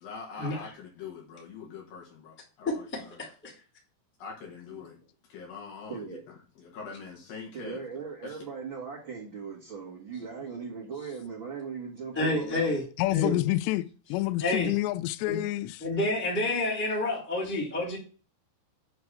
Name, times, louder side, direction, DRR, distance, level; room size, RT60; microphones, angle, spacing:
voice 1, 0.0-3.3 4.2-5.0 5.3-6.2 6.6-7.8 8.2-8.4, left 5 dB, 60° left, 3.1 m, -43 dB
voice 2, 2.6-3.0 3.4-3.5 12.1-12.8 13.1-13.4 14.4-14.7 15.3-15.4 15.8-18.0, left 2 dB, 5° left, 1.4 m, -28 dB
voice 3, 5.9-6.2 7.5-12.8, right 5 dB, 60° right, 1.3 m, -39 dB
voice 4, 13.0-15.8, left 17 dB, 85° left, 2.6 m, -28 dB
8.1 x 3.4 x 6.6 m
omnidirectional pair, 5.2 m